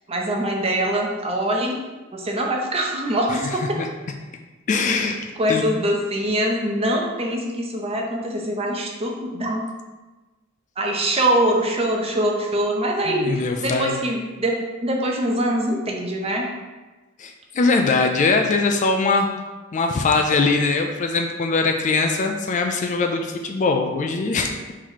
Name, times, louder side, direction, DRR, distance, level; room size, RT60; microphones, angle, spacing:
voice 1, 0.1-1.8 2.1-3.7 5.4-9.7 10.8-13.3 13.6-14.5 14.8-16.5, right 1 dB, 30° right, 0 dB, 0.6 m, -23 dB
voice 2, 4.7-5.2 5.5-5.6 13.1-13.9 17.2-19.3 19.7-24.6, left 3 dB, 35° left, 4 dB, 0.3 m, -21 dB
4.0 x 3.0 x 4.4 m, 1.2 s
head